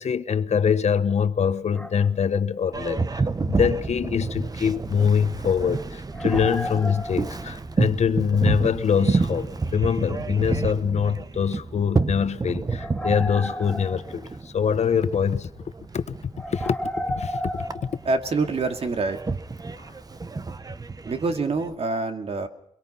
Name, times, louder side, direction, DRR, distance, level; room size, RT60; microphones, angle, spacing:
voice 1, 0.0-15.5 15.9-16.1 16.5-16.8 17.2-17.6, left 7 dB, 70° left, 1.2 m, -24 dB
sound 1, 1.7-2.1 3.6-3.7 6.1-7.7 11.1-11.2 12.7-14.5 16.3-18.7, equal, 5° left, 2.9 m, -33 dB
Boat Water vehicle, 2.7-21.7, right 3 dB, 30° right, 1.1 m, -30 dB
voice 2, 18.0-19.2 21.1-22.5, right 3 dB, 55° right, 2.4 m, -26 dB
23.5 x 22.5 x 5.7 m
wide cardioid pair, 105°, 12 cm